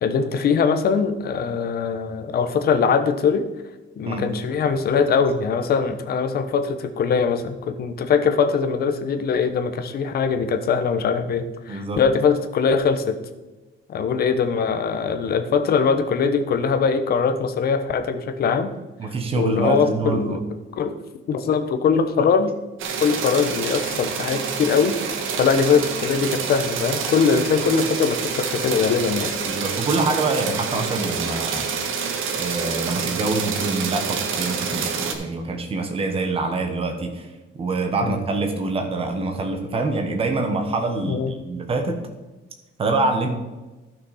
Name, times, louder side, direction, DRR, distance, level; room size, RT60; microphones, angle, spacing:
voice 1, 0.0-3.5 4.0-13.2 13.9-18.7 19.4-20.4 20.8-21.0 21.3-22.5 23.0-29.4 38.0-38.2 41.0-41.3, left 5 dB, 50° left, 7 dB, 0.9 m, -21 dB
voice 2, 11.7-12.0 19.0-20.4 29.5-31.7 32.3-37.3 37.6-42.0 42.8-43.3, right 3 dB, 25° right, 4 dB, 1.2 m, -25 dB
sound 1, 22.8-35.1, right 6 dB, 75° right, 1.4 m, -27 dB
13.0 x 6.0 x 4.2 m, 1.1 s
cardioid pair, 175°, 21 cm